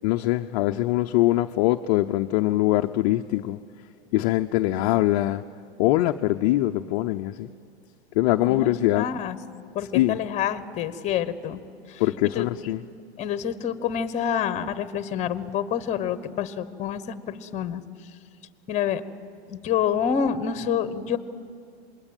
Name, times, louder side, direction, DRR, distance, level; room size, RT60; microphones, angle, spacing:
voice 1, 0.0-3.6 4.1-5.4 5.8-7.5 8.1-9.0 9.9-10.2 12.0-12.8, left 16 dB, 35° left, 0.5 m, -22 dB
voice 2, 8.4-9.4 9.7-11.6 11.9-12.8 13.2-17.8 18.7-19.0 19.5-21.2, left 8 dB, 20° left, 1.1 m, -28 dB
26.5 x 21.0 x 9.1 m
supercardioid pair, 150°, 33 cm